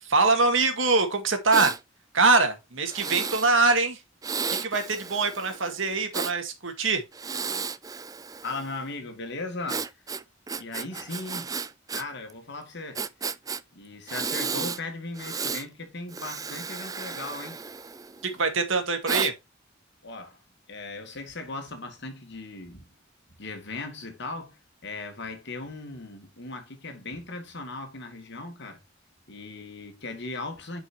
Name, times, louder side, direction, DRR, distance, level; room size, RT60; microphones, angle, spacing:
voice 1, 0.0-1.7 2.1-4.0 4.5-7.0 18.2-19.3, right 3 dB, 70° right, 2.1 m, -23 dB
Breathing, 1.5-1.8 2.9-3.5 4.2-6.3 7.1-8.7 9.7-12.0 12.3-12.4 12.9-13.6 14.1-14.8 15.1-15.6 16.1-18.3 19.1-19.3, right 5 dB, 20° right, 0.4 m, -33 dB
voice 2, 8.4-9.9 10.5-11.6 11.9-13.0 13.7-17.6 20.0-20.4 20.7-22.9 23.4-28.8 29.3-30.8, left 2 dB, 60° left, 2.3 m, -38 dB
11.0 x 5.5 x 2.9 m
head